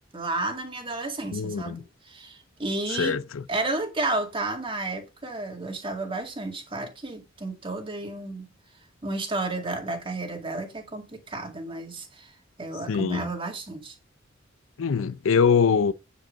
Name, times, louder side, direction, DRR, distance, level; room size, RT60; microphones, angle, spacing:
voice 1, 0.1-3.2 3.5-8.5 9.0-14.0, right 2 dB, 25° right, 2.1 m, -32 dB
voice 2, 1.3-1.8 3.0-3.4 12.9-13.2 14.8-15.9, left 6 dB, 80° left, 0.5 m, -23 dB
9.1 x 5.3 x 5.1 m
head